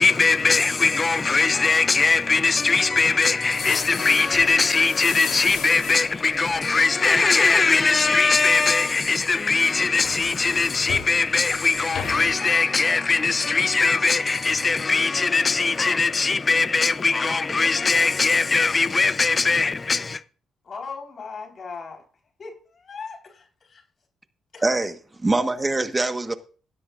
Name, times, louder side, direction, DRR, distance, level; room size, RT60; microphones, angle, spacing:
voice 1, 0.0-20.2, left 4 dB, 30° left, 0.6 m, -20 dB
sound 1, 3.5-7.2 7.5-7.8 8.3-9.3 9.6-11.2 11.5-11.7 12.0-12.3, left 8 dB, 80° left, 3.5 m, -35 dB
voice 2, 20.6-22.0 22.4-23.8 24.5-24.7, left 5 dB, 45° left, 4.2 m, -38 dB
voice 3, 24.6-26.3, right 2 dB, 20° right, 1.4 m, -24 dB
16.5 x 12.0 x 2.5 m
cardioid pair, 90°, 0 cm